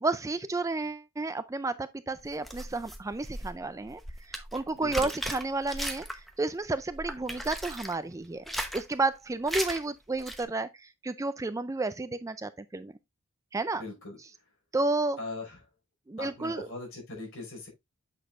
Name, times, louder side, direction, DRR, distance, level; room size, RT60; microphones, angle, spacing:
voice 1, 0.0-4.0 4.3-8.4 8.7-12.9 13.5-13.9 14.7-15.2 16.1-16.7, right 3 dB, 15° right, 0.3 m, -31 dB
sound 1, 2.2-6.4 6.7-7.9 8.3-8.9 9.5-9.8 10.2-10.4, equal, ahead, 0.9 m, -37 dB
voice 2, 4.7-5.1 13.7-14.2 15.2-15.6 16.2-17.7, left 2 dB, 65° left, 5.1 m, -40 dB
7.9 x 6.5 x 2.5 m
head